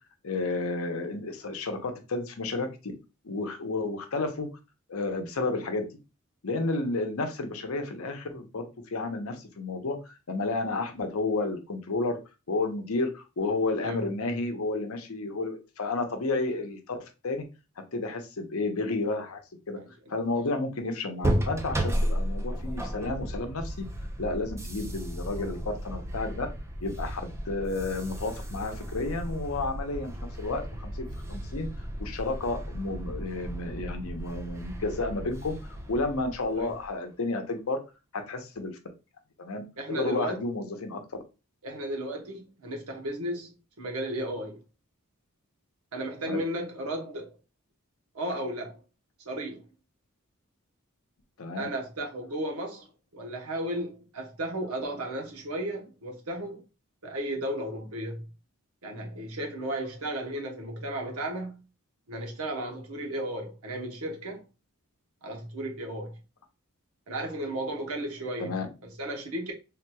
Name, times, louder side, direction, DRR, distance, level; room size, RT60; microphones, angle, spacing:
voice 1, 0.2-2.9 3.2-4.5 4.9-5.8 6.4-12.2 12.5-17.0 17.2-17.4 17.9-19.4 19.7-19.8 20.1-23.9 24.2-26.5 26.8-30.1 30.4-31.7 32.0-35.6 35.9-37.8 38.1-38.7 39.4-41.0 46.3-46.4 51.4-51.6 68.4-68.7, left 3 dB, 70° left, 0.7 m, -31 dB
voice 2, 13.8-14.4 19.8-19.9 36.6-36.7 39.8-40.4 41.6-43.5 43.8-44.6 45.9-47.3 48.1-48.8 49.2-49.7 51.6-52.9 53.1-56.6 57.0-58.3 58.8-61.6 62.1-64.4 65.2-66.2 67.1-68.5 68.8-69.5, right 1 dB, 85° right, 1.0 m, -34 dB
sound 1, 21.2-36.9, equal, 10° right, 0.4 m, -34 dB
3.6 x 2.9 x 2.2 m
head